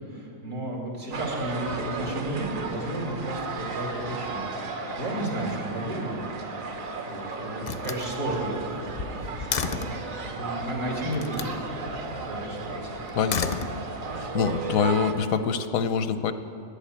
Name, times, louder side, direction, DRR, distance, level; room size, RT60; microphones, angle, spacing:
voice 1, 0.1-6.2 7.1-9.9 10.2-11.5 12.3-12.9, right 1 dB, 90° right, -1 dB, 3.1 m, -33 dB
sound 1, 1.1-15.1, right 4 dB, 70° right, 1.4 m, -34 dB
Slam, 6.5-7.1 7.6-10.1 11.1-11.6 13.1-14.2, left 6 dB, 55° left, 0.4 m, -33 dB
voice 2, 13.1-13.7 14.1-16.3, left 6 dB, 85° left, 11 dB, 1.1 m, -25 dB
12.0 x 10.5 x 8.7 m, 2.7 s
omnidirectional pair, 1.4 m